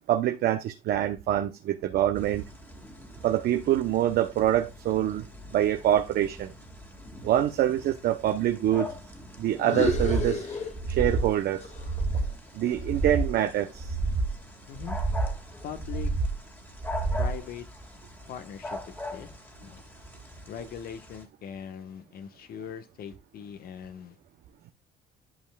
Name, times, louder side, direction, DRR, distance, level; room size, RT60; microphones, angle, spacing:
voice 1, 0.1-2.4 3.2-5.3 5.5-6.5 7.2-8.9 9.4-10.6 10.9-11.7 12.5-13.9, right 12 dB, 65° right, 0.8 m, -25 dB
sound 1, 2.1-21.2, left 2 dB, 10° left, 1.9 m, -43 dB
sound 2, 9.6-11.3 11.6-13.8, left 4 dB, 45° left, 1.6 m, -34 dB
sound 3, 9.8-10.3 10.7-11.3 11.7-12.3 12.7-13.3 13.7-14.3 14.8-15.4 15.8-16.4 16.8-17.4, right 3 dB, 30° right, 1.8 m, -29 dB
voice 2, 14.7-15.0 15.6-16.1 17.1-17.7 18.3-18.8 19.1-19.3 19.6-19.9 20.5-24.2, left 8 dB, 65° left, 1.2 m, -40 dB
11.0 x 5.5 x 2.3 m
cardioid pair, 110°, 17 cm